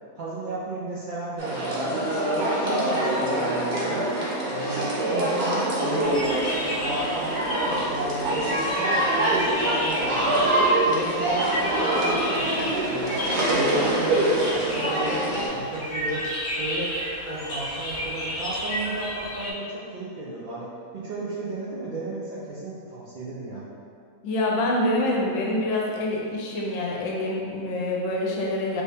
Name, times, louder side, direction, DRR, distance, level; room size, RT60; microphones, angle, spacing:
voice 1, 0.1-2.1 2.3-4.1 4.5-7.4 7.7-10.5 10.8-13.2 13.5-16.3 16.6-17.0 17.2-23.7, right 2 dB, 85° right, -8 dB, 0.4 m, -34 dB
sound 1, 1.4-15.5, right 1 dB, 60° right, 1.0 m, -25 dB
sound 2, 6.0-19.5, equal, 50° left, 0.5 m, -32 dB
voice 2, 24.2-28.8, left 1 dB, 70° left, -2 dB, 1.0 m, -26 dB
3.1 x 2.7 x 3.3 m, 2.3 s
omnidirectional pair, 1.5 m